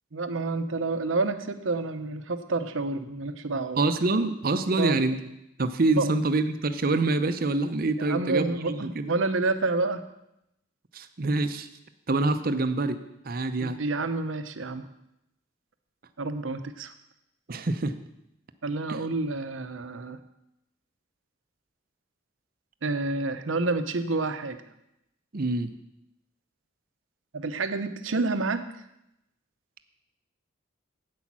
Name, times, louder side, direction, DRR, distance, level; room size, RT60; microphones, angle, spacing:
voice 1, 0.1-3.8 4.8-5.0 6.0-6.1 8.0-10.0 13.6-14.9 16.2-16.9 18.6-20.2 22.8-24.6 27.3-28.7, right 3 dB, 85° right, 10 dB, 0.8 m, -29 dB
voice 2, 3.8-5.2 5.6-9.1 10.9-11.7 12.1-13.0 13.2-13.8 17.5-17.9 18.9-19.0 25.3-25.7, right 2 dB, 50° right, 10 dB, 0.7 m, -26 dB
8.5 x 8.3 x 6.1 m, 0.84 s
head